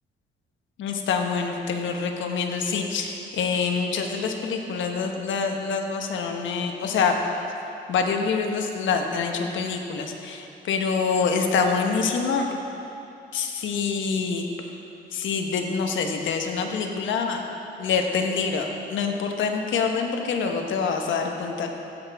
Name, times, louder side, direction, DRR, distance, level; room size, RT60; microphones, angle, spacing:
voice 1, 0.8-7.1 7.9-12.6 13.3-14.5 15.1-17.4 17.8-21.7, left 5 dB, 75° left, 3 dB, 1.2 m, -26 dB
16.0 x 8.0 x 3.5 m, 2.7 s
cardioid pair, 90°, 20 cm